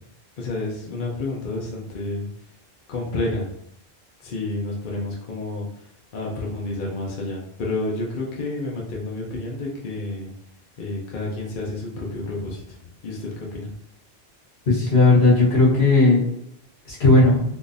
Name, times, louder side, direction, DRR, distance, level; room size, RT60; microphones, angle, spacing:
voice 1, 0.4-2.3 2.9-3.5 4.2-5.7 6.1-10.3 10.8-12.6 13.0-13.7, left 2 dB, 55° left, -3 dB, 0.8 m, -29 dB
voice 2, 14.7-16.2 16.9-17.4, left 2 dB, 80° left, -6 dB, 1.5 m, -16 dB
3.8 x 2.5 x 2.5 m, 0.75 s
omnidirectional pair, 1.0 m